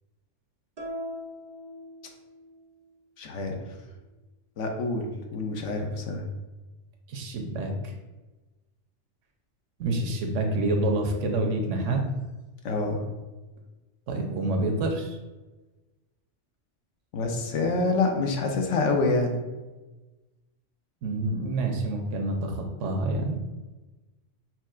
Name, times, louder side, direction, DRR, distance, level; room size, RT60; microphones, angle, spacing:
sound 1, 0.8-2.6, equal, 50° right, 0.5 m, -39 dB
voice 1, 3.2-3.6 4.6-6.2 12.6-13.0 17.1-19.4, left 3 dB, 80° left, 3 dB, 1.0 m, -27 dB
voice 2, 7.1-7.9 9.8-12.0 14.1-15.2 21.0-23.4, right 2 dB, 90° right, 3 dB, 1.0 m, -27 dB
5.6 x 2.3 x 2.4 m, 1.1 s
omnidirectional pair, 1.2 m